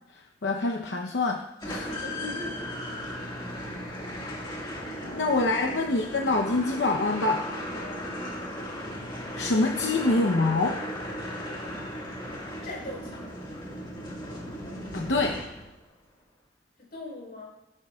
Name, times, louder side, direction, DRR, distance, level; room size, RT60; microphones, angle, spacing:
voice 1, 0.4-1.9 4.8-7.5 9.3-10.8 14.9-15.5, left 2 dB, 85° left, 2 dB, 0.8 m, -26 dB
sound 1, 1.6-15.9, equal, 25° left, 1.8 m, -36 dB
voice 2, 1.9-3.1 4.9-5.5 7.7-8.1 12.6-13.3 16.8-17.6, left 2 dB, 60° left, -3 dB, 4.4 m, -41 dB
19.0 x 9.4 x 2.4 m, 0.90 s
head